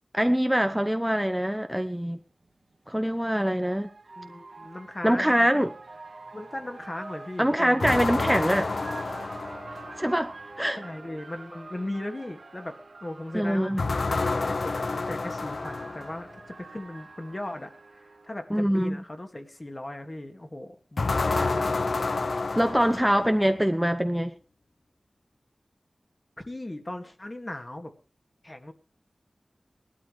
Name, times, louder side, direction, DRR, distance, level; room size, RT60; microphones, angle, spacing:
voice 1, 0.1-2.2 2.9-3.9 5.0-5.7 7.4-8.7 10.0-10.8 13.3-13.8 18.5-19.0 22.5-24.3, equal, 5° right, 0.8 m, -24 dB
sound 1, 2.9-18.5, right 3 dB, 65° right, 2.0 m, -45 dB
voice 2, 4.2-5.6 6.3-8.3 10.8-21.7 26.4-27.9 28.4-28.7, left 1 dB, 30° left, 2.1 m, -38 dB
sound 2, 7.8-10.1 13.8-16.3 21.0-23.6, left 3 dB, 75° left, 0.6 m, -29 dB
19.0 x 12.5 x 3.2 m
wide cardioid pair, 60°, 0 cm